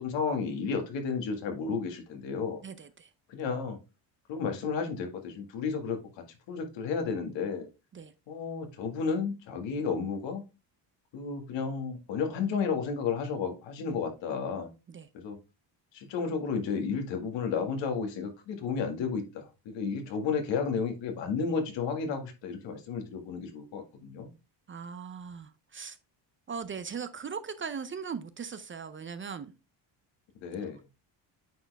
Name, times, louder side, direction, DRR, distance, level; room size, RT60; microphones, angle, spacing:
voice 1, 0.0-2.6 3.3-3.8 4.3-6.0 6.5-7.7 8.3-10.4 11.1-14.7 15.1-15.4 15.9-24.3 30.4-30.8, left 5 dB, 70° left, 2.0 m, -32 dB
voice 2, 2.6-3.1 7.9-8.1 14.9-15.1 24.7-26.0 26.5-29.5, right 6 dB, 25° right, 0.5 m, -39 dB
9.2 x 4.4 x 3.4 m
cardioid pair, 120°, 45 cm